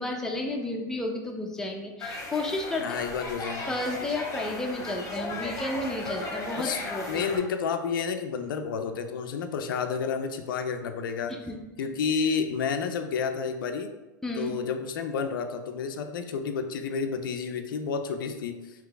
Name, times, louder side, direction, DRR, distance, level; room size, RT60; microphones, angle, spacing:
voice 1, 0.0-2.9 3.7-7.2 11.3-11.6 14.2-14.5, left 2 dB, 5° left, 0 dB, 0.6 m, -32 dB
sound 1, 2.0-7.4, left 2 dB, 30° left, 0.9 m, -36 dB
voice 2, 2.8-3.7 6.6-6.8 7.1-11.3 11.8-13.9 14.4-18.9, left 6 dB, 85° left, 6 dB, 0.4 m, -30 dB
3.8 x 2.9 x 3.4 m, 1.1 s
hypercardioid pair, 110°, 11 cm